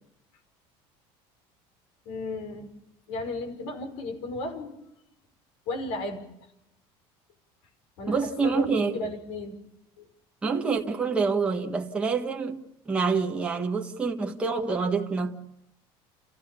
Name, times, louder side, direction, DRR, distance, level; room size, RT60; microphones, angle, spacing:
voice 1, 2.1-2.7 3.1-4.8 5.7-6.2 8.0-8.2 8.4-9.5 10.0-10.1, left 2 dB, 90° left, 5.6 m, -34 dB
voice 2, 8.1-8.9 10.4-15.4, right 4 dB, 10° right, 1.5 m, -27 dB
29.5 x 15.5 x 7.0 m
cardioid pair, 175°, 12 cm